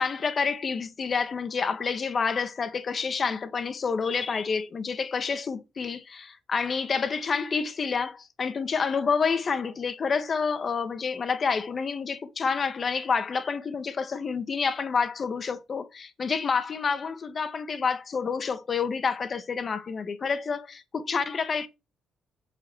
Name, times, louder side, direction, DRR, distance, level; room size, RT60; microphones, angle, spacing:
voice 1, 0.0-21.7, left 5 dB, 45° left, 1.8 m, -28 dB
7.7 x 7.5 x 6.3 m
cardioid pair, 90°, 0 cm